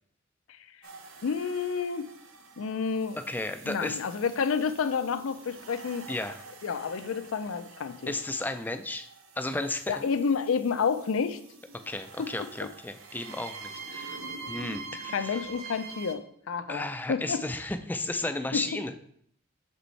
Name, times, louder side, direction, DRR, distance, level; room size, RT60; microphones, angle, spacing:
sound 1, 0.8-16.1, right 4 dB, 85° right, 0.7 m, -46 dB
voice 1, 1.2-2.1 2.6-3.2 3.6-6.1 6.6-8.1 9.9-11.4 12.2-12.5 15.1-17.4 18.5-18.7, left 5 dB, 80° left, 11 dB, 0.4 m, -30 dB
voice 2, 3.2-4.0 6.1-6.4 8.1-9.1 9.4-10.1 11.9-14.2 14.5-15.4 16.7-19.0, left 2 dB, 10° left, 8 dB, 0.3 m, -33 dB
6.3 x 5.2 x 3.2 m, 0.67 s
head